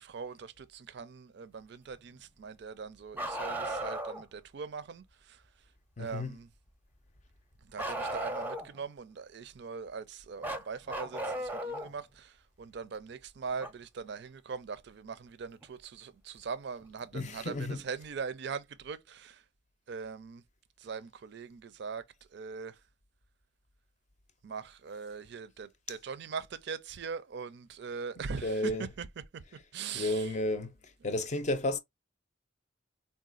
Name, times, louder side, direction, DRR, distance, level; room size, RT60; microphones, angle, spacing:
voice 1, 0.0-5.4 6.0-6.5 7.6-19.4 19.9-20.4 20.8-22.0 22.3-22.8 24.4-29.1 29.3-29.4 29.7-30.3, right 5 dB, 60° right, 0.4 m, -41 dB
Bark, 3.1-4.2 7.8-8.8 10.4-11.9 13.6-13.7 15.6-15.7 16.8-16.9, right 1 dB, 10° right, 0.5 m, -36 dB
voice 2, 6.0-6.4 17.1-17.8 28.4-28.9 29.9-30.7 31.0-31.8, left 1 dB, 40° left, 0.5 m, -32 dB
3.8 x 2.2 x 2.4 m
head